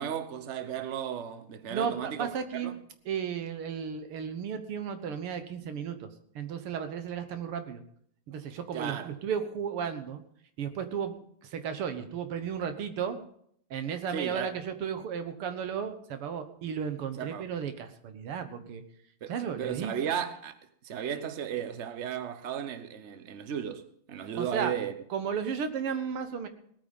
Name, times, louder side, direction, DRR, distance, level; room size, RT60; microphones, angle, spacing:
voice 1, 0.0-2.8 8.7-9.1 14.1-14.5 17.2-17.5 19.2-20.6 20.8-24.9, right 8 dB, 45° right, 1.0 m, -35 dB
voice 2, 1.7-2.7 3.1-6.1 6.4-7.8 8.3-10.2 10.6-11.1 11.4-13.2 13.7-18.8 19.3-19.9 24.3-24.7 25.1-26.5, right 7 dB, 85° right, 2.2 m, -34 dB
18.5 x 9.1 x 5.3 m
omnidirectional pair, 2.4 m